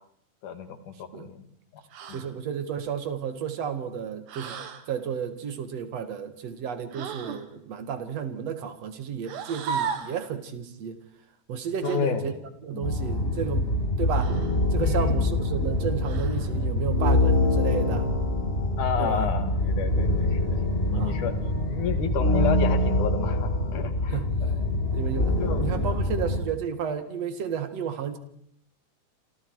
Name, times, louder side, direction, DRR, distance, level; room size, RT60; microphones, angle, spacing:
voice 1, 0.4-1.4 2.1-2.3 11.8-12.3 12.7-12.9 14.8-15.4 18.8-24.6 25.4-25.6, left 6 dB, 70° left, 8 dB, 3.5 m, -31 dB
sound 1, 1.9-2.3 4.3-4.9 6.9-7.5 9.2-10.2 11.8-12.0 14.1-14.6 16.0-16.5, right 6 dB, 80° right, 3.3 m, -35 dB
voice 2, 2.1-4.6 4.9-11.0 11.5-12.3 12.6-13.7 14.0-14.4 14.7-18.1 19.0-19.3 20.9-21.2 24.1-24.3 24.9-28.2, right 7 dB, 55° right, 9 dB, 2.8 m, -32 dB
sound 2, 12.8-26.4, left 1 dB, 20° left, 2.1 m, -25 dB
28.0 x 27.0 x 4.8 m, 0.67 s
omnidirectional pair, 3.7 m